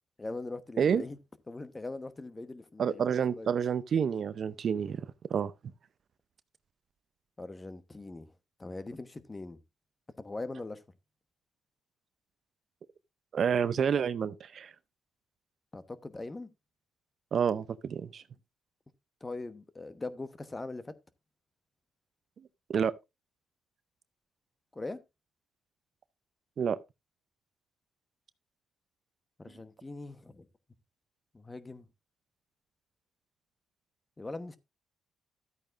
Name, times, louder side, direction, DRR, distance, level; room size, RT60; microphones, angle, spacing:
voice 1, 0.2-1.2 1.5-3.5 7.4-8.3 8.6-9.6 10.2-10.8 15.7-16.5 19.2-20.9 24.7-25.0 29.4-30.5 31.3-31.9 34.2-34.6, left 2 dB, 20° left, 1.0 m, -41 dB
voice 2, 2.8-5.5 13.3-14.7 17.3-18.2 22.7-22.9 26.6-26.8, right 7 dB, 55° right, 0.6 m, -29 dB
12.5 x 8.8 x 2.5 m
cardioid pair, 90°, 0 cm